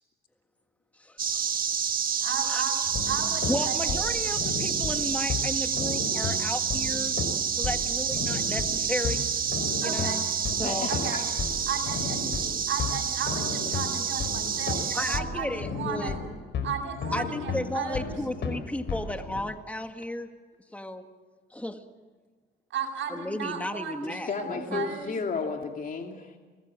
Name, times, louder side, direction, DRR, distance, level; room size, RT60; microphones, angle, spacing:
voice 1, 1.0-1.4 2.5-2.7 3.5-7.1 7.6-9.3 9.8-10.2 10.6-10.9 14.9-16.2 17.1-20.3 20.7-21.1 21.5-21.8 23.1-24.9, left 1 dB, 5° left, 7 dB, 1.8 m, -34 dB
sound 1, 1.2-15.2, right 7 dB, 45° right, 1.4 m, -29 dB
voice 2, 2.2-2.8 3.1-4.2 9.8-10.2 10.9-11.2 11.7-12.3 12.7-16.2 16.6-18.2 22.7-25.1, right 6 dB, 70° right, 1 dB, 7.5 m, -35 dB
sound 2, 2.9-19.4, left 5 dB, 65° left, 5.1 m, -34 dB
voice 3, 10.6-11.2 24.0-26.3, left 5 dB, 45° left, 3 dB, 2.8 m, -33 dB
25.0 x 20.5 x 7.6 m, 1.4 s
cardioid pair, 90°, 20 cm